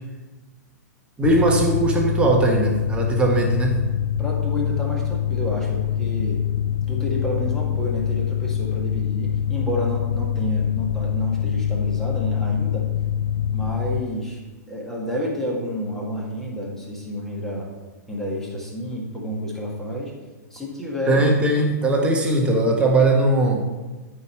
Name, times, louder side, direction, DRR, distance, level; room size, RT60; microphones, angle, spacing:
Mechanical fan, 1.2-14.0, left 9 dB, 70° left, 0.5 m, -24 dB
voice 1, 1.2-3.8 21.1-23.6, right 2 dB, 10° right, 0 dB, 1.4 m, -19 dB
voice 2, 4.2-6.4 6.9-12.9 13.5-14.4 14.7-17.7 18.1-20.1 20.5-21.2, equal, 5° left, -3 dB, 1.9 m, -30 dB
13.0 x 4.9 x 4.5 m, 1.2 s
figure-of-eight pair, 110°, 9 cm